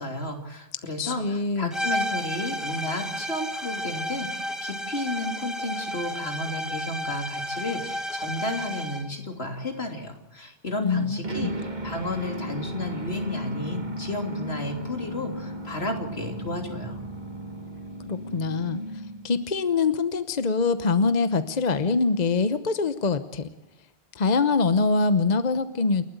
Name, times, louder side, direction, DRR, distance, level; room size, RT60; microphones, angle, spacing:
voice 1, 0.0-11.5 11.8-17.0, left 2 dB, 75° left, 4 dB, 3.3 m, -33 dB
voice 2, 1.0-1.7 10.8-11.5 18.1-18.8 19.2-23.5 24.1-26.0, left 4 dB, 45° left, 11 dB, 1.0 m, -24 dB
sound 1, 1.7-9.1, equal, ahead, 1.4 m, -32 dB
sound 2, 11.2-19.5, right 1 dB, 45° right, 1.9 m, -35 dB
29.0 x 12.0 x 8.0 m, 0.93 s
omnidirectional pair, 1.1 m